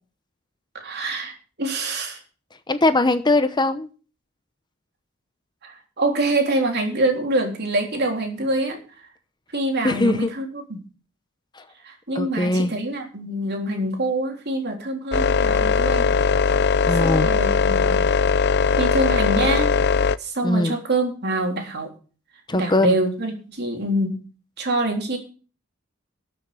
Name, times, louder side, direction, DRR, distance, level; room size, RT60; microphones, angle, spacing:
voice 1, 0.7-2.2 5.6-8.8 9.5-10.6 11.8-16.1 17.0-18.1 18.8-19.7 20.2-21.9 22.5-24.2 24.6-25.2, right 2 dB, 55° right, 2 dB, 3.7 m, -25 dB
voice 2, 2.7-3.9 9.8-10.3 11.6-11.7 12.1-12.7 16.9-17.3 20.4-20.8 22.5-23.0, left 2 dB, 20° left, 10 dB, 0.8 m, -21 dB
sound 1, 15.1-20.2, left 5 dB, 55° left, 0.5 m, -19 dB
13.0 x 7.0 x 7.8 m, 0.37 s
head